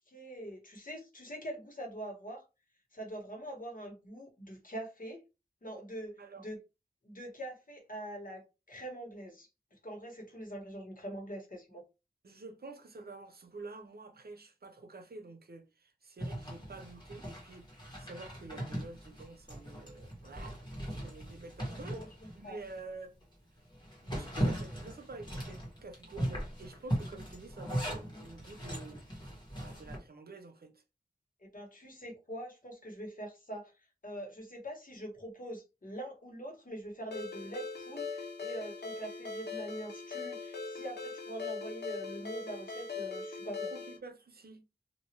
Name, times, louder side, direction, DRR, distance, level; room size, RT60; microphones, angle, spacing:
voice 1, 0.1-2.4 2.9-5.2 5.6-6.6 7.0-11.8 21.7-22.1 22.4-22.6 31.4-33.7 34.0-43.7, right 1 dB, 55° left, 1.4 m, -44 dB
voice 2, 12.2-20.6 21.0-23.2 24.0-29.0 29.5-30.8 43.7-44.6, right 3 dB, 70° right, 0.6 m, -49 dB
Zipper (clothing), 16.2-22.8 23.2-23.3 23.7-30.0, equal, 25° left, 1.5 m, -39 dB
Ringtone, 37.1-44.0, left 4 dB, 85° left, 0.7 m, -41 dB
3.0 x 2.6 x 2.9 m
wide cardioid pair, 70°, 17 cm